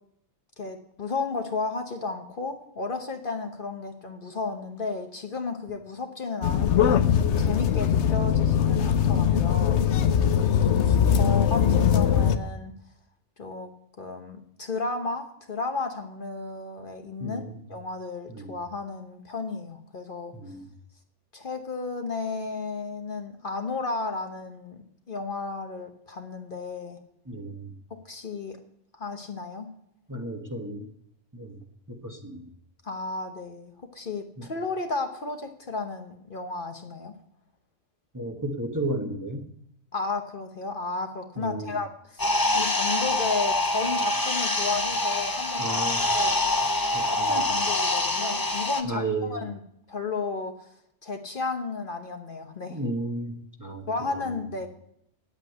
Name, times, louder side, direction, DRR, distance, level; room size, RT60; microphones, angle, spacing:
voice 1, 0.6-9.8 10.8-12.7 13.4-13.7 14.0-20.3 21.3-27.0 27.9-28.6 28.9-29.7 32.8-37.1 39.9-45.8 46.1-46.8 47.0-49.0 49.3-49.6 49.9-50.7 51.0-52.8 53.9-54.7, left 3 dB, 50° left, 5 dB, 1.2 m, -33 dB
sound 1, 6.4-12.4, left 8 dB, 70° left, 1.0 m, -21 dB
voice 2, 17.2-17.6 18.3-18.6 20.4-20.6 27.3-27.7 30.1-30.9 31.3-31.6 31.9-32.5 34.4-34.5 38.1-39.5 41.4-41.8 45.6-46.0 46.9-47.5 48.8-49.5 52.7-54.3, right 2 dB, 15° right, 2 dB, 1.2 m, -33 dB
sound 2, 42.2-48.8, left 2 dB, 20° left, 0.7 m, -25 dB
9.8 x 8.6 x 7.9 m, 0.73 s
omnidirectional pair, 1.2 m